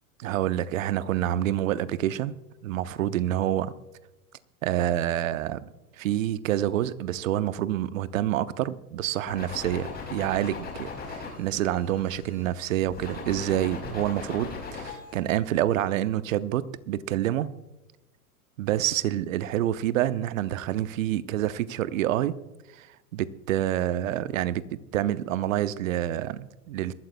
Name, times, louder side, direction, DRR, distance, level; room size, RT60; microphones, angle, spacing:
voice 1, 0.2-2.4 2.6-3.7 4.6-5.6 6.0-17.5 18.6-22.3 22.7-22.9 23.1-24.6 24.9-26.9, right 12 dB, 60° right, 15 dB, 0.8 m, -27 dB
sound 1, 9.3-12.5 12.9-15.2, left 4 dB, 20° left, 5.7 m, -39 dB
22.5 x 14.0 x 2.2 m, 1.0 s
hypercardioid pair, 105°, 44 cm